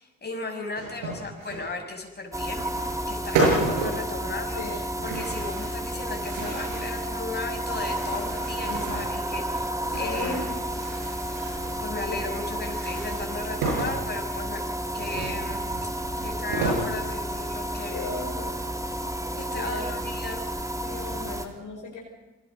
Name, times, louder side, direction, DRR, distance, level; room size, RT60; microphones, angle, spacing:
voice 1, 0.0-2.7 3.1-9.7 9.9-10.4 11.8-14.6 14.9-15.9 16.2-18.0 19.4-20.4, left 3 dB, 30° left, 2 dB, 6.2 m, -35 dB
sound 1, 0.7-1.7 2.6-3.1 3.3-4.0 5.0-5.8 6.1-7.0 7.5-9.2 9.8-11.8 12.6-14.0 15.0-16.9 17.5-17.6 18.0-18.8, right 3 dB, 70° right, 7.2 m, -31 dB
sound 2, 2.3-21.5, right 1 dB, 10° right, 2.8 m, -31 dB
voice 2, 8.6-9.0 9.9-10.5 12.0-12.1 12.5-12.6 17.6-18.6 19.5-19.9 20.8-22.0, left 3 dB, 60° left, 1 dB, 4.8 m, -37 dB
28.0 x 23.0 x 5.4 m, 1.1 s
figure-of-eight pair, 40°, 35 cm